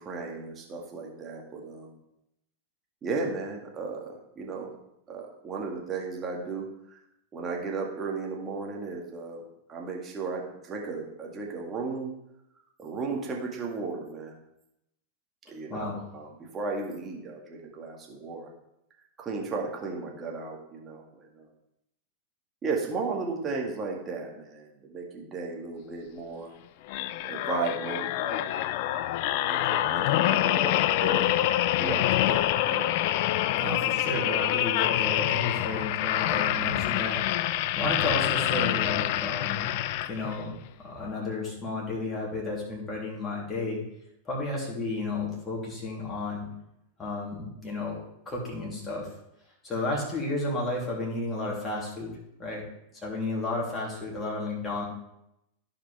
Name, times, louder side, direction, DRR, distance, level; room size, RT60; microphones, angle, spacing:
voice 1, 0.0-1.9 3.0-4.7 5.1-7.0 7.3-9.4 9.7-12.1 12.8-14.4 15.5-18.5 19.2-21.5 22.6-26.5 27.2-28.7 29.3-31.3 31.8-32.9, right 4 dB, 25° right, -1 dB, 2.0 m, -35 dB
voice 2, 15.7-16.0 33.5-37.2 37.7-39.7 40.1-43.8 44.2-46.5 47.0-49.1 49.6-52.1 52.4-52.6 52.9-54.8, left 2 dB, 15° left, -4 dB, 3.2 m, -32 dB
sound 1, 26.9-40.5 41.0-41.2, left 13 dB, 50° left, 0.3 m, -26 dB
15.0 x 5.1 x 3.4 m, 0.82 s
figure-of-eight pair, 90°, 0 cm